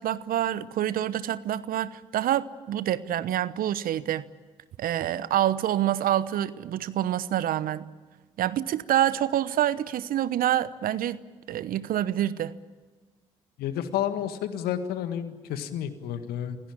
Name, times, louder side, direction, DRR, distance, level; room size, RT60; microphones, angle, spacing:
voice 1, 0.0-4.2 4.8-7.9 8.4-11.2 11.5-12.5, right 12 dB, 60° right, 17 dB, 0.9 m, -27 dB
voice 2, 13.6-16.6, left 10 dB, 70° left, 10 dB, 1.8 m, -30 dB
27.0 x 17.5 x 8.9 m, 1.4 s
hypercardioid pair, 45°, 16 cm